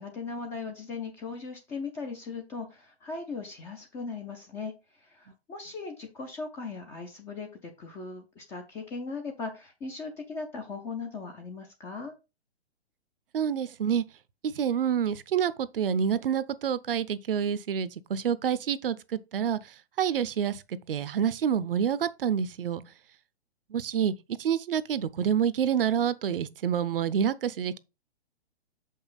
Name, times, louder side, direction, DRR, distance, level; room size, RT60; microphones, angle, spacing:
voice 1, 0.0-12.1, left 4 dB, 5° left, 0.4 m, -38 dB
voice 2, 13.3-14.0 14.4-19.6 20.0-22.8 23.7-24.1 24.4-27.8, right 8 dB, 55° right, 0.6 m, -27 dB
6.8 x 5.4 x 3.8 m
figure-of-eight pair, 125°, 33 cm